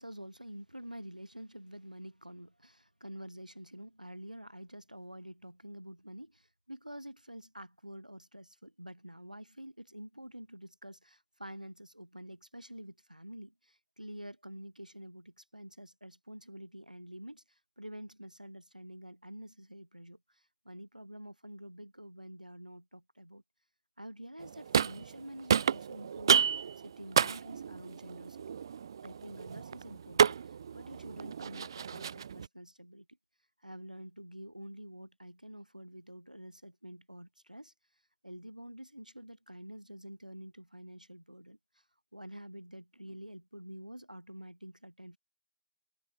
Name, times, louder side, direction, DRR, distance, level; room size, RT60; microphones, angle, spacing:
voice 1, 0.0-23.4 24.0-26.3 26.8-28.6 29.0-33.1 33.6-37.7 38.2-41.8 42.1-45.2, equal, 85° right, 2.1 m, -48 dB
sound 1, 24.4-25.2 25.5-32.5, right 7 dB, 35° right, 0.4 m, -31 dB
figure-of-eight pair, 150°, 4 cm